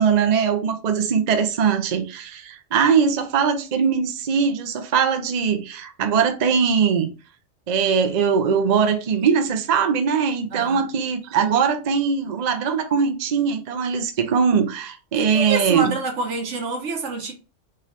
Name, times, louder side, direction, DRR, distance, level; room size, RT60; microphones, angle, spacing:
voice 1, 0.0-7.1 7.7-15.9, right 6 dB, 50° right, 0.5 m, -21 dB
voice 2, 10.5-10.9 15.1-17.3, right 3 dB, 70° right, 1.3 m, -27 dB
3.9 x 3.1 x 2.5 m
omnidirectional pair, 1.3 m